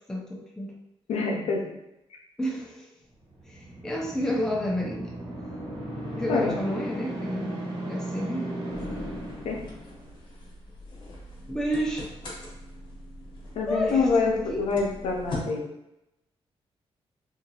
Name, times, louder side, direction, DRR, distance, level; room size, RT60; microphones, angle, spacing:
voice 1, 0.1-0.8 2.4-2.9 3.5-5.1 6.2-7.6 7.9-8.5 11.5-12.1 13.7-14.7, equal, 5° left, -2 dB, 0.5 m, -30 dB
voice 2, 1.1-1.7 6.3-6.6 9.4-9.6 13.5-15.7, left 4 dB, 85° left, -1 dB, 0.6 m, -26 dB
sound 1, 3.3-10.3, right 1 dB, 80° right, 1.3 m, -36 dB
sound 2, 8.7-15.4, left 1 dB, 50° left, 0.9 m, -41 dB
2.8 x 2.5 x 2.7 m, 0.87 s
wide cardioid pair, 135°, 11 cm